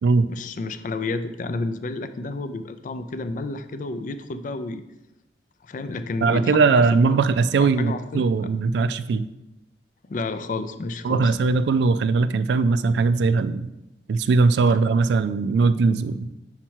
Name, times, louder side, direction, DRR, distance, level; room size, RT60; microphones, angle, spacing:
voice 1, 0.3-4.8 5.6-6.8 7.1-7.2 7.6-8.3 10.1-11.4, left 3 dB, 45° left, 11 dB, 0.4 m, -31 dB
voice 2, 6.2-9.3 11.0-13.7 14.1-16.3, right 4 dB, 70° right, 13 dB, 0.3 m, -20 dB
5.8 x 4.4 x 4.4 m, 0.94 s
head